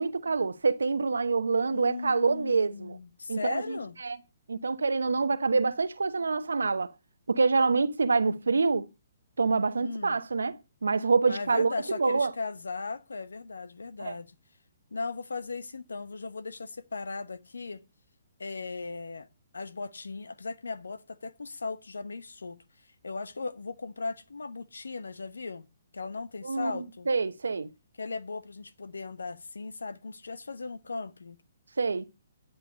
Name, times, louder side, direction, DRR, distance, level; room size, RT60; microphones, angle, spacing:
voice 1, 0.0-3.0 3.3-3.6 4.0-4.2 4.5-6.9 7.3-8.9 9.4-10.5 10.8-12.3 14.0-14.1 26.4-27.7 31.8-32.1, right 4 dB, 80° right, 0.9 m, -26 dB
voice 2, 1.7-4.0 9.8-10.2 11.3-14.4 14.9-17.8 18.4-19.3 19.5-25.7 25.9-27.1 28.0-31.4, left 4 dB, 80° left, 1.0 m, -37 dB
11.0 x 8.2 x 5.1 m
hypercardioid pair, 135°, 0 cm